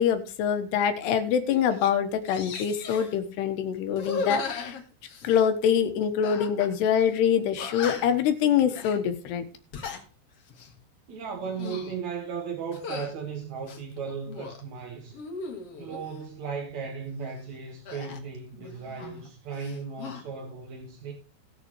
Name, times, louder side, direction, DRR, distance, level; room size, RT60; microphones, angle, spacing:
voice 1, 0.0-4.8 5.2-9.4, left 8 dB, 85° left, 3.3 m, -25 dB
sound 1, 1.0-1.2 1.5-1.9 2.2-3.1 3.9-5.5 6.2-6.7 7.0-7.1 7.6-8.2 8.7-9.0 9.5-10.0 10.5-10.7 11.4-12.0 12.7-13.1 13.6-14.6 15.1-16.1 17.9-19.3 19.5-20.2, left 4 dB, 50° left, 2.0 m, -37 dB
voice 2, 11.1-15.2 15.8-21.1, right 5 dB, 55° right, 2.5 m, -36 dB
19.5 x 6.8 x 3.1 m
omnidirectional pair, 4.7 m